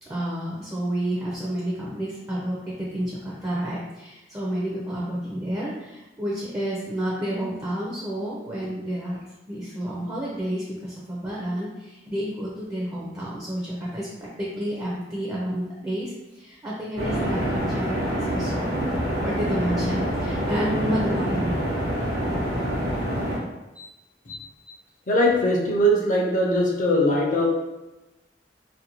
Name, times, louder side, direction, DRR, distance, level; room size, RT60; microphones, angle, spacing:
voice 1, 0.0-9.2 9.5-14.1 14.4-21.5 21.8-22.0 23.7-23.9 24.7-24.8, equal, 20° right, -5 dB, 0.5 m, -30 dB
sound 1, 16.9-23.4, equal, 65° right, 0.8 m, -26 dB
voice 2, 25.1-27.5, equal, 45° left, -1 dB, 0.5 m, -21 dB
2.5 x 2.1 x 2.9 m, 1.0 s
head